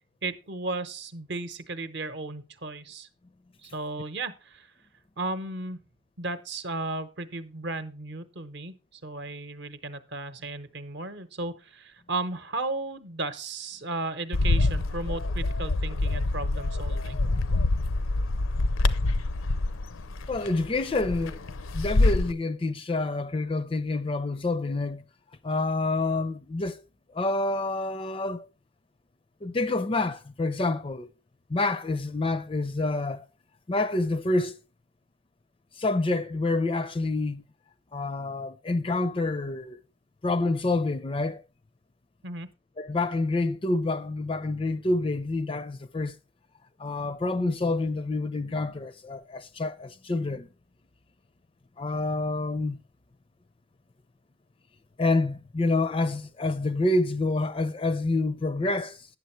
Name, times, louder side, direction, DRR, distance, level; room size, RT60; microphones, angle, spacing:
voice 1, 0.2-3.1 3.6-4.7 5.2-5.8 6.2-17.2 42.2-42.5, right 2 dB, 55° right, 0.8 m, -35 dB
Bird, 14.3-22.3, left 2 dB, 75° left, 0.6 m, -26 dB
voice 2, 20.3-21.4 21.7-25.0 25.4-26.8 27.1-28.5 29.4-31.1 31.5-33.3 33.7-34.6 35.8-37.4 37.9-39.8 40.2-41.4 42.8-46.2 46.8-50.5 51.8-52.8 55.0-59.1, left 2 dB, 25° left, 0.4 m, -27 dB
9.3 x 7.1 x 4.4 m
head